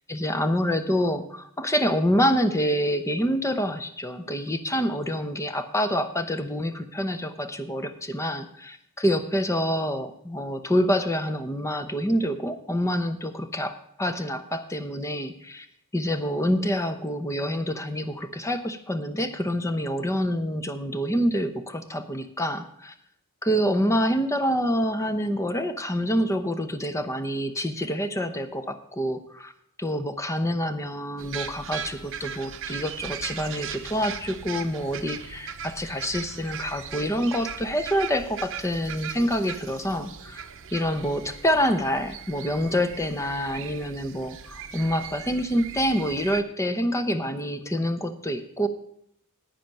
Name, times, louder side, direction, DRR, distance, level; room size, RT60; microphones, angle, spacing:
voice 1, 0.1-15.7 15.9-22.9 23.4-29.5 29.8-40.4 40.7-48.7, equal, 15° left, 9 dB, 0.7 m, -27 dB
sound 1, 31.2-46.4, right 8 dB, 60° right, 0.7 m, -39 dB
10.0 x 9.0 x 5.3 m, 0.72 s
head